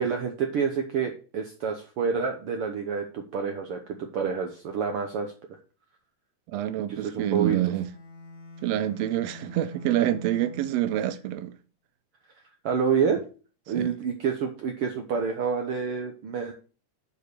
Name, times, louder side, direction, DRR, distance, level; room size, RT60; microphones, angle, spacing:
voice 1, 0.0-5.3 6.9-7.6 12.6-13.2 13.7-16.5, right 6 dB, 70° right, 1.3 m, -28 dB
voice 2, 6.5-7.9 8.6-11.6 13.7-13.9, right 13 dB, 90° right, 1.4 m, -27 dB
Bowed string instrument, 7.6-11.5, left 3 dB, 75° left, 2.9 m, -45 dB
8.1 x 4.4 x 6.6 m
omnidirectional pair, 3.5 m